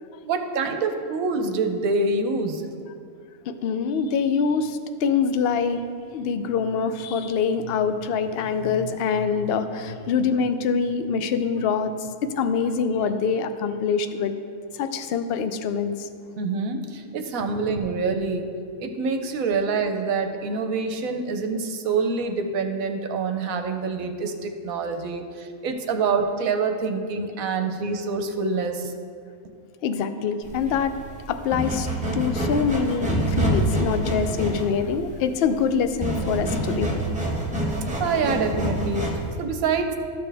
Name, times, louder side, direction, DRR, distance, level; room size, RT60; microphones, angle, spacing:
voice 1, 0.2-2.6 16.4-18.5 18.8-28.9 38.0-40.0, right 4 dB, 70° right, 6 dB, 1.1 m, -26 dB
voice 2, 3.5-5.8 6.1-12.1 12.4-14.3 14.7-16.1 29.8-30.9 31.3-31.9 32.1-36.9, left 6 dB, 70° left, 9 dB, 0.5 m, -24 dB
sound 1, 30.4-39.4, right 1 dB, 5° right, 1.0 m, -27 dB
13.0 x 6.9 x 3.4 m, 2.4 s
omnidirectional pair, 1.5 m